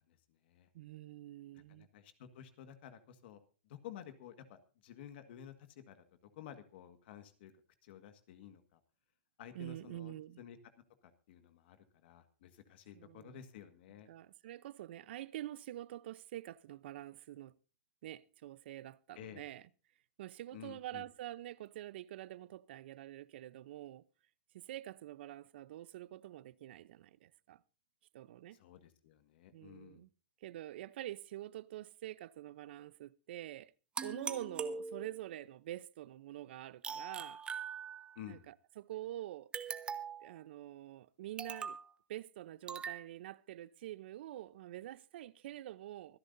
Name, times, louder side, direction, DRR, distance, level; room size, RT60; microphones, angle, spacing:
voice 1, 0.1-0.7 1.5-3.4 3.6-6.0 6.3-7.5 7.8-8.8 9.4-10.6 11.0-14.1 19.1-19.4 20.5-21.1 28.5-30.0 38.2-38.4, left 9 dB, 60° left, 1.8 m, -53 dB
voice 2, 0.7-1.9 9.5-10.4 12.9-13.4 14.1-17.5 18.0-19.6 20.2-24.0 24.5-27.6 28.1-28.6 29.5-30.1 30.4-33.7 34.0-37.4 38.3-39.5 40.2-41.8 42.1-46.2, right 13 dB, 65° right, 0.7 m, -46 dB
sound 1, 34.0-35.4 36.8-38.3 39.5-40.3 41.4-41.9 42.7-43.0, right 6 dB, 15° right, 1.2 m, -42 dB
24.5 x 10.5 x 2.7 m
supercardioid pair, 150°, 6 cm